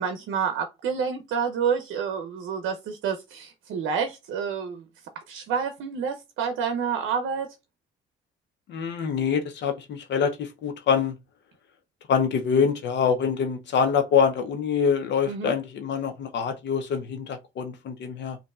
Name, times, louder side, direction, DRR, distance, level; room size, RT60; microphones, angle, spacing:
voice 1, 0.0-4.8 5.3-7.5 15.3-15.5, right 6 dB, 80° right, 0.6 m, -28 dB
voice 2, 8.7-11.1 12.1-18.4, left 6 dB, 65° left, 0.6 m, -25 dB
5.2 x 2.6 x 2.3 m
cardioid pair, 90°, 20 cm